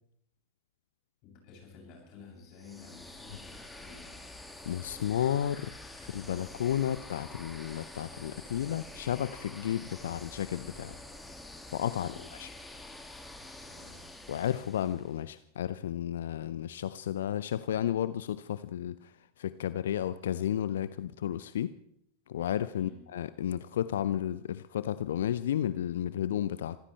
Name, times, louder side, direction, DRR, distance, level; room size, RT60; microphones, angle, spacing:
voice 1, 1.2-4.2 12.0-12.2 13.7-14.0 22.7-23.0, left 5 dB, 40° left, -1 dB, 7.7 m, -52 dB
sound 1, 2.5-15.2, left 2 dB, 5° left, 2.1 m, -47 dB
voice 2, 4.7-11.0 11.7-12.5 14.3-21.7 22.3-26.8, left 10 dB, 60° left, 15 dB, 0.5 m, -32 dB
25.5 x 15.0 x 3.3 m, 0.72 s
figure-of-eight pair, 90°, 0 cm